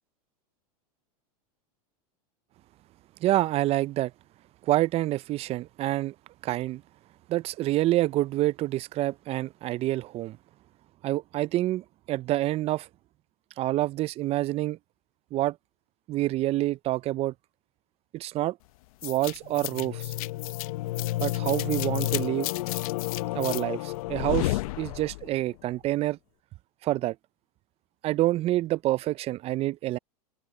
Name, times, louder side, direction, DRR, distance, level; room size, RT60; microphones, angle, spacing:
voice 1, 3.2-4.1 4.6-6.1 6.4-6.8 7.3-10.4 11.0-12.9 13.6-14.8 15.3-15.6 16.1-17.3 18.1-18.6 19.0-20.1 21.2-22.5 23.3-26.2 26.8-27.2 28.0-30.0, right 16 dB, 35° right, 0.4 m, -27 dB
sound 1, 19.0-25.4, left 18 dB, 70° left, 0.7 m, -31 dB
hypercardioid pair, 115°, 19 cm